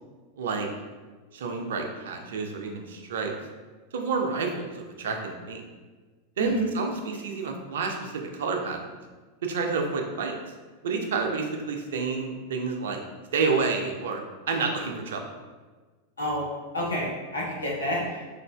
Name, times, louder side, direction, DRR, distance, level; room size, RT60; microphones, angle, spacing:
voice 1, 0.4-0.7 1.3-3.3 3.9-5.6 6.4-8.9 9.4-10.3 10.8-13.0 13.3-14.2 14.5-15.2, right 4 dB, 60° right, 3 dB, 0.3 m, -29 dB
voice 2, 6.4-6.7 16.2-16.4 16.7-18.2, equal, 75° left, -5 dB, 0.7 m, -28 dB
3.1 x 2.4 x 2.2 m, 1.3 s
figure-of-eight pair, 90°, 0 cm